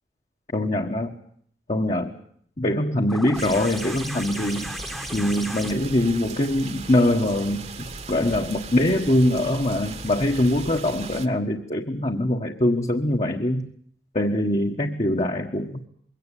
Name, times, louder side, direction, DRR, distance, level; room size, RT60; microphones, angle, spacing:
voice 1, 0.5-1.2 1.7-2.1 2.6-4.7 5.1-7.6 8.1-13.7 14.1-15.8, left 1 dB, 40° left, 1 dB, 1.5 m, -23 dB
sound 1, 3.1-8.4 9.7-9.8, equal, ahead, 1.3 m, -37 dB
sound 2, 3.3-11.3, right 4 dB, 40° right, 1.5 m, -38 dB
22.5 x 17.5 x 10.0 m, 0.63 s
head